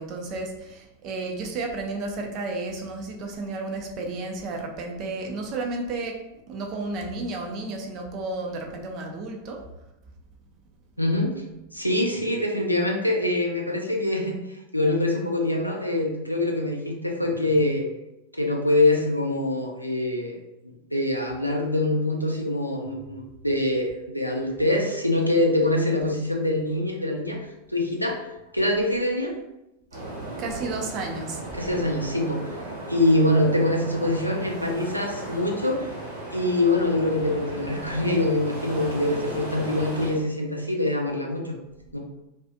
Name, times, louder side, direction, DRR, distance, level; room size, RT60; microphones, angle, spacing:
voice 1, 0.0-9.7 29.9-30.1 30.4-31.4, right 3 dB, 35° right, 2 dB, 0.4 m, -32 dB
voice 2, 11.0-11.4 11.7-14.4 14.7-17.8 18.3-20.3 20.6-27.4 27.7-28.2 28.5-29.3 31.5-32.4 32.9-35.9 36.3-41.6 41.9-42.0, left 1 dB, 90° left, 0 dB, 0.4 m, -24 dB
sound 1, 29.9-40.2, right 1 dB, 80° right, 1.2 m, -36 dB
2.4 x 2.4 x 2.4 m, 0.90 s
figure-of-eight pair, 90°, 0 cm